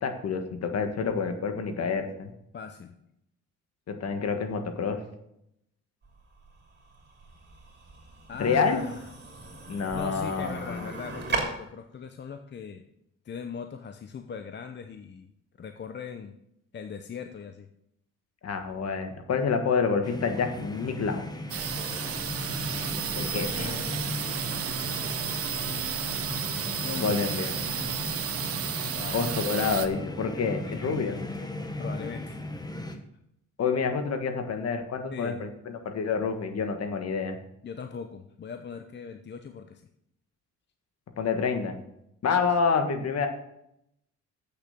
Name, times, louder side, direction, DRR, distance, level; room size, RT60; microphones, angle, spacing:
voice 1, 0.0-2.3 3.9-5.0 8.4-8.8 9.7-10.8 18.4-21.3 23.2-23.8 26.9-27.5 29.1-31.1 33.6-37.4 41.2-41.8 42.2-43.3, left 5 dB, 55° left, 6 dB, 1.6 m, -28 dB
voice 2, 2.5-3.0 8.3-9.1 9.9-12.9 13.2-15.3 15.6-16.3 16.7-17.7 23.5-24.1 26.8-27.4 28.9-29.2 30.6-30.8 31.8-32.4 35.1-35.4 37.6-39.8, left 6 dB, 35° left, 7 dB, 0.8 m, -39 dB
sound 1, 6.0-11.4, right 4 dB, 35° right, 3.0 m, -38 dB
sound 2, 20.0-33.0, left 2 dB, 15° left, 1.2 m, -37 dB
sound 3, 21.5-29.9, right 8 dB, 50° right, 1.0 m, -32 dB
8.2 x 6.9 x 6.7 m, 0.79 s
cardioid pair, 90°, 30 cm